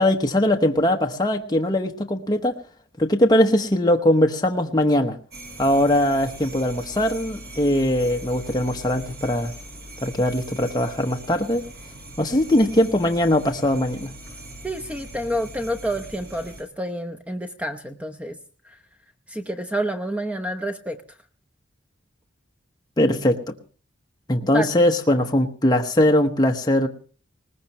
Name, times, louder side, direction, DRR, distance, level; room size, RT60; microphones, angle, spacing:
voice 1, 0.0-2.5 3.0-5.2 5.6-9.5 10.0-11.6 12.2-14.1 23.0-23.5 24.3-26.9, left 1 dB, 20° left, 1.0 m, -20 dB
sound 1, 5.3-16.6, right 1 dB, 50° right, 6.0 m, -41 dB
voice 2, 14.6-18.4 18.6-18.8 19.3-21.0 24.5-24.7, equal, 5° right, 0.8 m, -28 dB
20.5 x 19.5 x 3.1 m
head